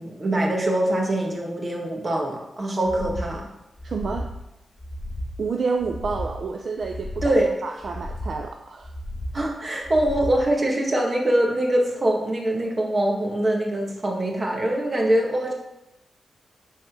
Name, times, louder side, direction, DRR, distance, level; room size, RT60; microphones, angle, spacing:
voice 1, 0.0-3.5 7.2-7.5 9.3-15.5, right 1 dB, 30° right, 0 dB, 1.8 m, -23 dB
sound 1, 2.8-3.3 3.7-4.3 4.7-5.3 5.8-6.4 6.8-7.4 7.8-8.4 8.8-9.4 9.8-10.4, equal, 20° left, 2.9 m, -34 dB
voice 2, 3.8-4.3 5.4-8.9, right 4 dB, 50° right, 3 dB, 0.6 m, -29 dB
10.5 x 4.2 x 6.7 m, 0.90 s
wide cardioid pair, 170°, 0 cm